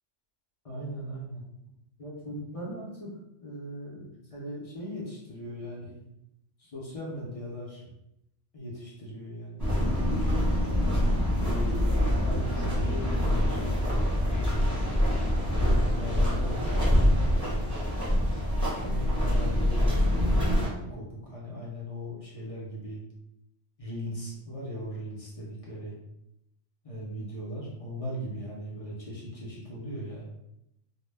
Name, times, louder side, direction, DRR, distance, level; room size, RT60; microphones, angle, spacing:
voice 1, 0.6-1.4 2.0-3.1 3.4-6.0 6.6-7.9 8.5-10.5 11.4-14.7 15.3-17.6 18.5-23.0 23.8-26.0 26.8-30.3, equal, 45° left, -5 dB, 0.4 m, -39 dB
sound 1, 9.6-20.7, equal, 15° right, 0.8 m, -25 dB
2.1 x 2.1 x 3.2 m, 0.84 s
omnidirectional pair, 1.2 m